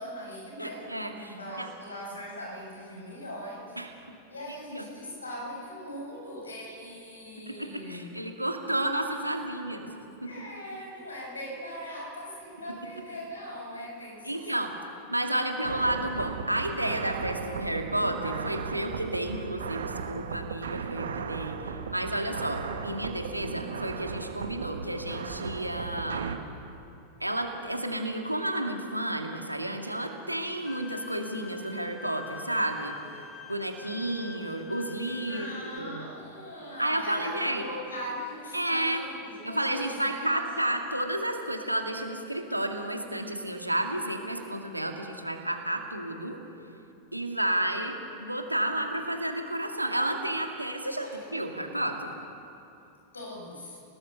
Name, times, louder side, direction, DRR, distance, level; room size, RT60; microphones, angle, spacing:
voice 1, 0.0-3.8 4.3-8.1 10.2-14.5 35.3-40.7 50.8-51.4 53.1-53.8, equal, 75° left, -2 dB, 7.7 m, -40 dB
voice 2, 0.6-1.7 3.8-3.9 4.5-4.8 7.5-9.9 10.2-10.3 14.2-14.7 15.1-21.6 21.9-26.3 27.2-32.9 33.5-36.1 36.8-37.7 38.5-39.0 39.4-46.4 47.1-52.2, right 1 dB, 85° right, 3 dB, 2.3 m, -31 dB
sound 1, 15.6-26.4, right 6 dB, 65° right, 1.4 m, -36 dB
Bowed string instrument, 30.7-35.8, left 6 dB, 20° left, 1.5 m, -46 dB
29.5 x 19.0 x 6.7 m, 2.7 s
figure-of-eight pair, 90°, 0 cm